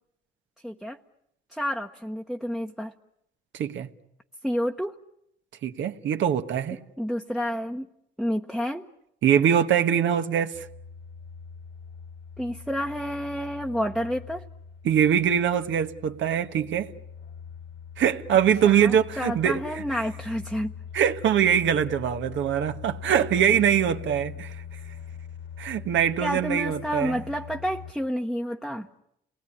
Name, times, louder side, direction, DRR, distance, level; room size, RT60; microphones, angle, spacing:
voice 1, 0.6-1.0 1.5-2.9 4.4-4.9 7.0-7.9 8.2-8.8 12.4-14.4 18.6-20.7 26.2-28.9, equal, ahead, 1.1 m, -29 dB
voice 2, 3.5-3.9 5.6-6.8 9.2-10.7 14.8-16.9 18.0-19.8 20.9-24.6 25.6-27.2, right 9 dB, 75° right, 1.4 m, -23 dB
sound 1, 10.5-27.9, left 7 dB, 65° left, 2.2 m, -42 dB
29.5 x 20.0 x 9.9 m
cardioid pair, 90°, 20 cm